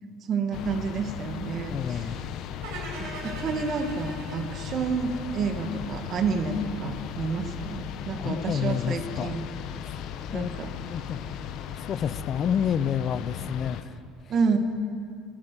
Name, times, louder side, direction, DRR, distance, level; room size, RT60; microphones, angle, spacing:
voice 1, 0.2-2.2 3.0-9.5 10.3-10.7 14.3-14.6, right 5 dB, 35° right, 6 dB, 1.5 m, -29 dB
sound 1, 0.5-13.8, left 9 dB, 55° left, 0.8 m, -37 dB
voice 2, 1.7-2.2 8.2-9.4 9.8-10.0 10.3-10.5 10.9-11.2 11.7-14.0, left 8 dB, 35° left, 16 dB, 0.4 m, -29 dB
sound 2, 2.6-5.8, right 2 dB, 75° right, 4.7 m, -40 dB
22.5 x 8.9 x 6.6 m, 2.4 s
cardioid pair, 150°, 0 cm